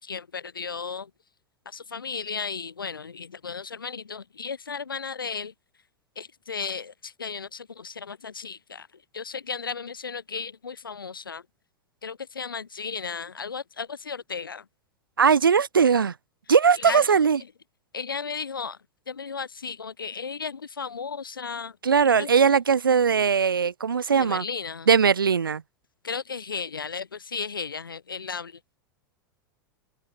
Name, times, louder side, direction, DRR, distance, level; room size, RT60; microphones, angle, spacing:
voice 1, 0.0-1.1 1.7-5.5 6.2-11.4 12.0-14.7 16.8-17.2 17.9-18.8 19.1-22.3 24.2-24.9 26.0-28.8, left 5 dB, 80° left, 7.0 m, -35 dB
voice 2, 15.2-16.1 16.5-17.4 21.8-24.4 24.9-25.6, right 6 dB, 80° right, 1.0 m, -20 dB
open air
figure-of-eight pair, 90°, 11 cm